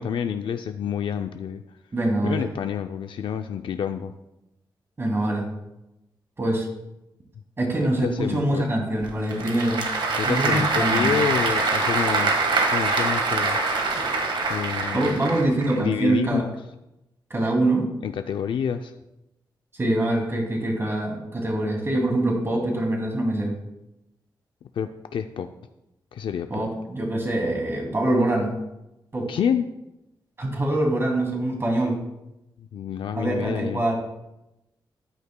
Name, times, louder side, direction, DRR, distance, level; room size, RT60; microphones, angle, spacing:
voice 1, 0.0-1.6 2.2-4.1 7.8-8.7 10.2-13.6 14.5-15.2 15.7-16.5 18.0-18.9 24.8-25.5 26.1-26.6 29.3-29.7 32.6-33.8, left 8 dB, 85° left, 7 dB, 0.4 m, -28 dB
voice 2, 1.9-2.4 5.0-5.4 6.4-6.7 7.6-9.8 10.2-11.1 14.8-16.4 17.3-17.9 19.8-23.5 26.5-28.5 29.1-29.3 30.4-31.9 33.1-33.9, right 1 dB, 30° right, 1 dB, 2.5 m, -24 dB
Applause / Crowd, 9.0-15.8, right 3 dB, 80° right, 1.5 m, -24 dB
13.5 x 9.8 x 2.2 m, 0.91 s
wide cardioid pair, 120°, 8 cm